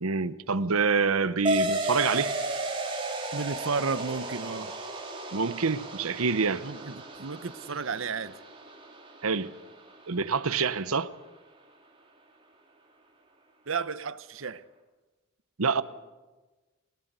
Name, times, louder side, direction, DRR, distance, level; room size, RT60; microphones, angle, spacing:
voice 1, 0.0-2.4 5.3-6.7 9.2-9.5 10.1-11.1 15.6-15.8, right 5 dB, 85° right, 1.0 m, -26 dB
sound 1, 1.4-10.5, right 1 dB, 25° right, 3.6 m, -34 dB
voice 2, 3.3-4.8 6.6-8.3 13.7-14.6, right 4 dB, 65° right, 0.8 m, -33 dB
21.0 x 19.0 x 8.1 m
head